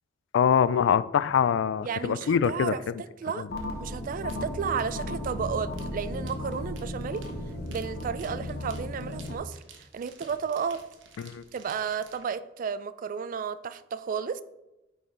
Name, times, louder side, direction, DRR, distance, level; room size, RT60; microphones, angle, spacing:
voice 1, 0.3-2.7 3.4-3.5 11.2-11.4, left 7 dB, 75° left, 16 dB, 0.3 m, -24 dB
voice 2, 1.8-3.5 3.8-7.3 7.7-10.8 11.5-14.4, right 6 dB, 45° right, 14 dB, 0.3 m, -33 dB
sound 1, 3.5-9.4, left 1 dB, 60° left, 1.1 m, -35 dB
sound 2, 4.3-12.3, right 5 dB, 85° right, 0.9 m, -52 dB
9.1 x 3.9 x 3.8 m, 0.97 s
head